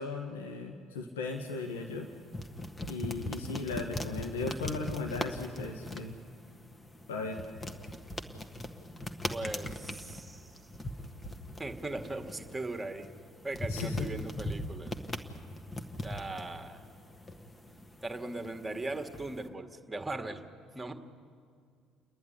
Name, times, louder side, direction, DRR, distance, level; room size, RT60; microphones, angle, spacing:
voice 1, 0.0-2.1 2.9-6.2 7.1-7.4 13.7-14.1, left 3 dB, 80° left, 2 dB, 1.3 m, -37 dB
sound 1, 1.3-19.5, left 1 dB, 20° left, 1.6 m, -41 dB
voice 2, 9.3-10.6 11.6-13.1 13.4-14.9 16.0-16.8 18.0-20.4 20.7-20.9, right 2 dB, 15° right, 5 dB, 1.9 m, -39 dB
29.5 x 10.5 x 10.0 m, 2.2 s
figure-of-eight pair, 55°, 0 cm